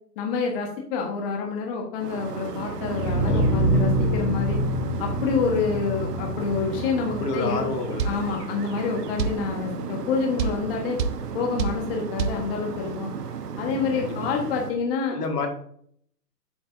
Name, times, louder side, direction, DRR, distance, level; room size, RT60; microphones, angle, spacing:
voice 1, 0.2-4.6 5.0-7.7 8.0-11.0 11.3-13.1 13.6-15.2, left 5 dB, 35° left, 1 dB, 1.5 m, -27 dB
sound 1, 2.0-14.7, right 6 dB, 70° right, 1.2 m, -35 dB
sound 2, 2.6-8.6, equal, 5° left, 0.4 m, -26 dB
voice 2, 7.2-8.0 14.0-14.3 15.1-15.5, left 4 dB, 70° left, 3 dB, 2.1 m, -29 dB
sound 3, 8.0-8.2 9.2-9.4 10.4-10.6 11.0-11.2 11.6-11.8 12.2-12.4, right 6 dB, 90° right, 0.8 m, -25 dB
8.1 x 6.7 x 2.7 m, 0.65 s
hypercardioid pair, 145°, 49 cm